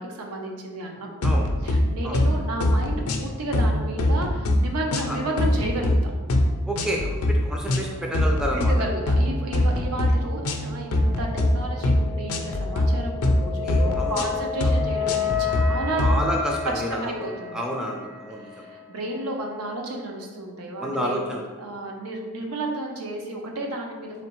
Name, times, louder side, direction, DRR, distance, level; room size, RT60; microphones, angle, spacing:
voice 1, 0.0-6.1 8.7-16.0 16.6-17.6 18.5-21.2 21.6-24.3, right 1 dB, 90° right, 1 dB, 0.7 m, -32 dB
sound 1, 1.2-1.8 2.1-2.3 2.6-3.3 3.5-4.6 4.9-5.9 6.3-6.5 6.8-7.3 7.7-7.9 8.1-8.7 9.1-9.2 9.5-10.1 10.4-10.6 10.9-11.5 11.8-12.0 12.3-12.9 13.2-13.4 13.7-14.2 14.6-14.8 15.1-15.6 16.0-16.2, left 1 dB, 85° left, 0.5 m, -22 dB
voice 2, 6.7-8.7 13.6-14.3 14.6-14.7 16.0-17.1 17.5-18.6 20.8-21.4, equal, 5° right, -1 dB, 0.4 m, -29 dB
sound 2, 7.7-19.0, left 8 dB, 60° right, 1.3 m, -33 dB
3.8 x 3.2 x 3.0 m, 1.4 s
head